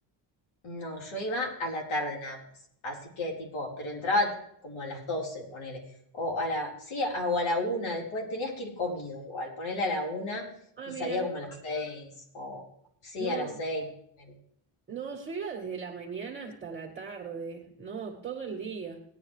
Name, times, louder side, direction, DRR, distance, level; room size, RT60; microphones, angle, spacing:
voice 1, 0.6-2.4 2.8-4.3 4.6-5.8 6.1-10.4 11.0-12.1 12.3-12.6 13.0-13.8, left 2 dB, 85° left, -1 dB, 4.4 m, -32 dB
voice 2, 10.8-11.3 13.2-13.6 14.9-19.0, right 6 dB, 20° right, 0 dB, 1.8 m, -38 dB
18.5 x 9.8 x 3.3 m, 0.69 s
cardioid pair, 150°, 48 cm